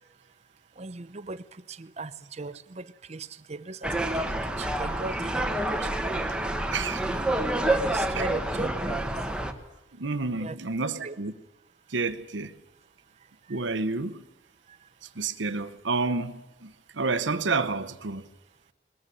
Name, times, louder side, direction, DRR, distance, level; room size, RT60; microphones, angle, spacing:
voice 1, 0.8-6.1 7.5-9.0 10.4-10.5 11.0-11.1, right 3 dB, 35° right, 0.7 m, -38 dB
sound 1, 3.8-9.5, right 1 dB, 5° right, 1.3 m, -28 dB
voice 2, 6.7-7.2 8.1-8.2 9.9-11.3 11.9-12.6 13.5-14.2 15.2-18.3, right 3 dB, 75° right, 0.9 m, -30 dB
20.5 x 14.5 x 9.9 m
head